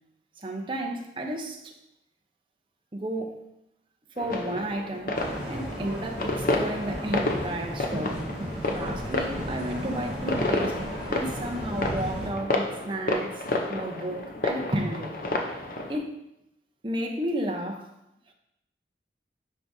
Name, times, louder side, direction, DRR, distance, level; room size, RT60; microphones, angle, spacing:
voice 1, 0.4-1.7 2.9-3.4 4.2-8.2 8.7-13.4 13.7-15.1 15.9-16.2 16.8-17.9, right 1 dB, 30° right, 2 dB, 0.7 m, -32 dB
sound 1, 4.2-16.0, left 2 dB, 50° left, 0.7 m, -31 dB
sound 2, 5.1-12.3, equal, 5° right, 1.8 m, -35 dB
9.8 x 4.7 x 2.7 m, 0.83 s
head